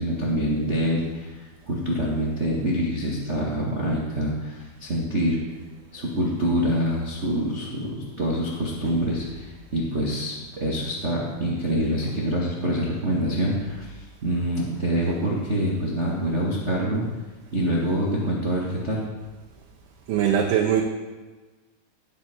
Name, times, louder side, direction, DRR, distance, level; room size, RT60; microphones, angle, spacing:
voice 1, 0.0-1.3 1.7-5.4 5.9-17.0 17.5-19.0, equal, 90° right, -4 dB, 0.6 m, -26 dB
voice 2, 20.1-20.8, right 9 dB, 75° right, -1 dB, 2.9 m, -21 dB
18.0 x 8.7 x 4.5 m, 1.3 s
omnidirectional pair, 4.9 m